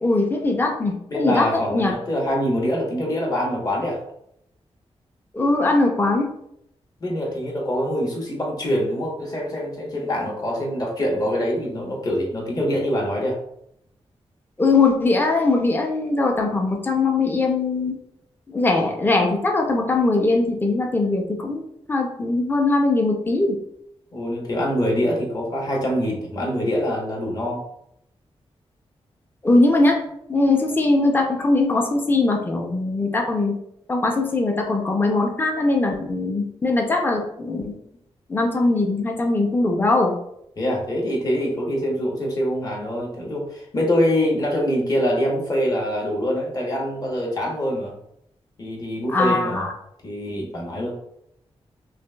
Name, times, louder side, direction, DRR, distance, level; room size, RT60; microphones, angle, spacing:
voice 1, 0.0-1.5 1.7-1.9 5.3-6.3 14.6-18.0 18.5-21.6 21.9-23.6 29.4-30.0 30.3-33.5 33.9-37.7 38.3-40.1 49.1-49.7, left 2 dB, 20° left, 2 dB, 0.5 m, -20 dB
voice 2, 1.1-4.0 7.0-13.4 24.1-27.6 40.6-47.9 48.6-49.7 50.0-50.9, equal, 35° left, -2 dB, 1.0 m, -24 dB
5.9 x 2.5 x 2.2 m, 0.76 s
wide cardioid pair, 170°, 11 cm